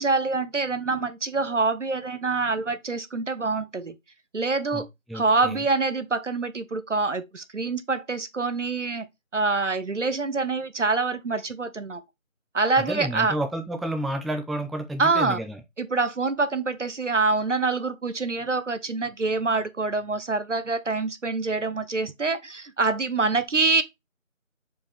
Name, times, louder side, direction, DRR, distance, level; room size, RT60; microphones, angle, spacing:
voice 1, 0.0-3.9 4.3-4.9 5.1-9.1 9.3-12.0 12.5-13.3 15.0-15.4 15.8-23.8, right 3 dB, 60° right, 0.5 m, -25 dB
voice 2, 5.1-5.6 12.9-15.6, right 1 dB, ahead, 0.4 m, -30 dB
4.6 x 2.6 x 4.3 m
figure-of-eight pair, 175°, 41 cm